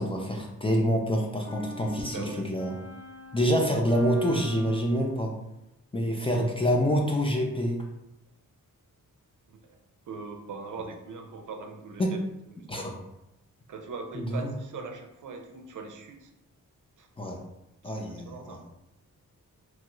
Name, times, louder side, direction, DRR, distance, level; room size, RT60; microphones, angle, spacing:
voice 1, 0.0-2.8 3.3-5.3 5.9-7.8 12.0-12.2 12.7-12.9 14.2-14.5 17.2-17.4 17.8-18.6, equal, 15° left, 0 dB, 0.4 m, -27 dB
sound 1, 1.4-5.3, right 1 dB, 50° left, 1.5 m, -44 dB
voice 2, 2.1-2.5 9.5-9.8 10.1-12.2 12.5-12.9 13.7-16.3 17.0-17.1 17.8-18.6, right 4 dB, 65° right, 4 dB, 0.5 m, -41 dB
3.0 x 2.3 x 2.9 m, 0.89 s
wide cardioid pair, 110°, 33 cm